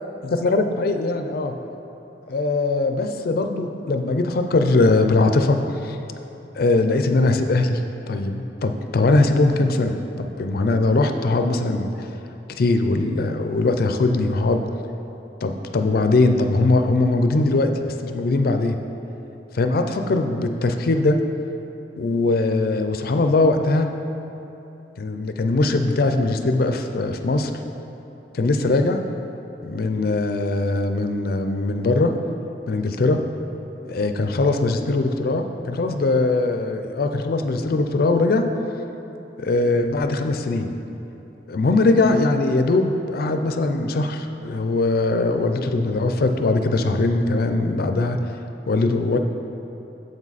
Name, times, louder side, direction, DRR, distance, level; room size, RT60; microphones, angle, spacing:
voice 1, 0.2-1.5 2.3-6.0 6.6-7.8 8.1-12.1 12.6-14.6 15.4-18.8 19.5-21.2 22.0-23.9 25.0-27.5 28.3-29.0 29.6-32.1 32.7-33.2 33.8-38.4 39.4-40.7 41.5-48.2 48.7-49.2, left 2 dB, 60° left, 6 dB, 0.4 m, -21 dB
7.6 x 7.3 x 4.0 m, 2.9 s
head